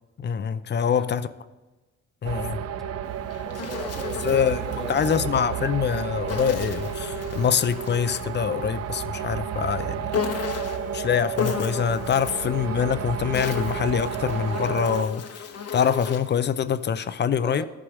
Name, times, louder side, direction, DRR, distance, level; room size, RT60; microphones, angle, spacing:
voice 1, 0.2-1.3 2.2-2.6 4.2-10.1 10.9-15.4 15.7-17.7, left 7 dB, 35° left, 0.5 m, -25 dB
voice 2, 0.8-1.3 3.4-5.1 17.4-17.7, equal, ahead, 1.3 m, -39 dB
sound 1, 2.2-15.0, right 9 dB, 55° right, 0.5 m, -32 dB
Insect, 3.0-5.2 6.3-8.4 10.1-10.9 11.4-12.5 13.1-16.4, left 6 dB, 55° left, 1.0 m, -34 dB
sound 2, 10.3-16.0, left 6 dB, 90° left, 2.6 m, -45 dB
13.5 x 5.0 x 4.8 m
cardioid pair, 90°, 30 cm